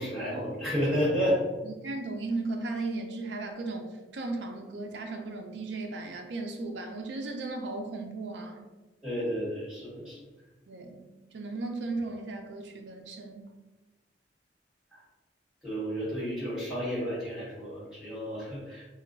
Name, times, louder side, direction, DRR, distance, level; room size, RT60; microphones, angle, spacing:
voice 1, 0.0-1.4 9.0-10.2 14.9-15.0 15.6-18.9, equal, ahead, -9 dB, 1.4 m, -31 dB
voice 2, 1.6-3.8 4.1-8.6 10.7-11.0 11.3-13.4, right 3 dB, 75° right, 4 dB, 0.4 m, -36 dB
2.2 x 2.1 x 3.8 m, 1.2 s
head